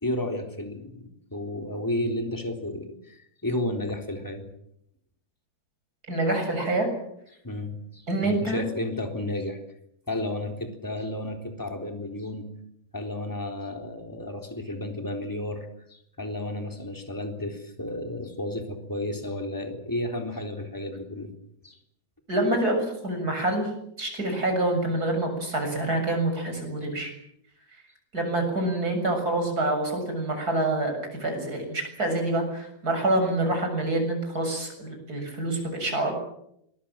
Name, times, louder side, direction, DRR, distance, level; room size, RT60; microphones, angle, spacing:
voice 1, 0.0-4.5 7.4-9.6 10.1-12.5 12.9-21.3 21.6-21.8, left 1 dB, 5° left, 4 dB, 3.2 m, -32 dB
voice 2, 6.1-6.9 8.1-8.6 22.3-23.7 24.0-27.1 28.1-36.1, right 2 dB, 20° right, 4 dB, 7.6 m, -26 dB
27.0 x 22.5 x 7.5 m, 0.76 s
omnidirectional pair, 4.4 m